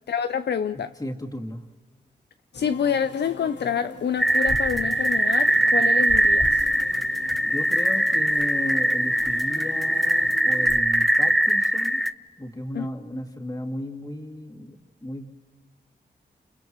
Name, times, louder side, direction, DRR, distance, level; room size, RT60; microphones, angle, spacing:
voice 1, 0.1-1.0 2.5-6.6 12.7-12.9, left 7 dB, 70° left, 0.5 m, -27 dB
voice 2, 0.7-1.6 7.5-12.0 12.4-15.3, left 1 dB, 20° left, 2.6 m, -35 dB
sound 1, 2.5-10.8, left 3 dB, 90° left, 1.4 m, -40 dB
sound 2, 4.2-12.1, right 1 dB, ahead, 0.6 m, -21 dB
29.5 x 28.5 x 3.1 m
cardioid pair, 50°, 18 cm